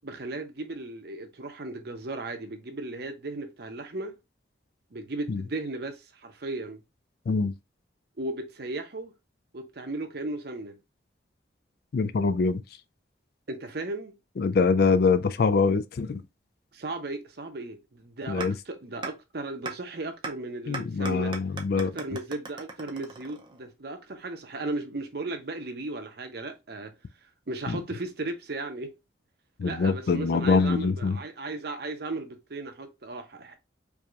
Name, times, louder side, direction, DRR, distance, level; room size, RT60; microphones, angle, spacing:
voice 1, 0.0-4.1 4.9-6.8 8.2-9.1 9.5-10.8 13.5-14.1 16.7-21.3 21.7-26.9 27.5-28.9 29.6-33.6, right 2 dB, 60° right, 0.8 m, -36 dB
voice 2, 11.9-12.6 14.4-16.2 18.3-18.5 20.7-21.9 27.7-27.8 29.6-31.2, left 4 dB, 55° left, 0.4 m, -24 dB
sound 1, 18.4-18.5 19.0-19.1 19.7-19.8 20.2-20.3 20.7-23.7, right 4 dB, 25° right, 0.6 m, -36 dB
4.7 x 2.8 x 2.4 m
head